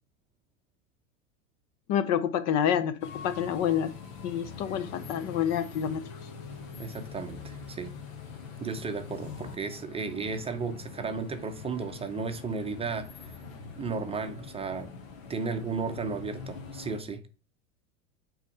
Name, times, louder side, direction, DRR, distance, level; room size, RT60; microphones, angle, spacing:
voice 1, 1.9-3.9 4.2-6.0, left 9 dB, 40° left, 0.6 m, -28 dB
sound 1, 3.0-17.0, left 5 dB, 75° left, 1.4 m, -44 dB
voice 2, 6.8-7.9 8.6-13.4 13.8-14.9 15.3-17.2, right 4 dB, 15° right, 0.7 m, -34 dB
5.7 x 3.6 x 4.7 m
hypercardioid pair, 100°, 41 cm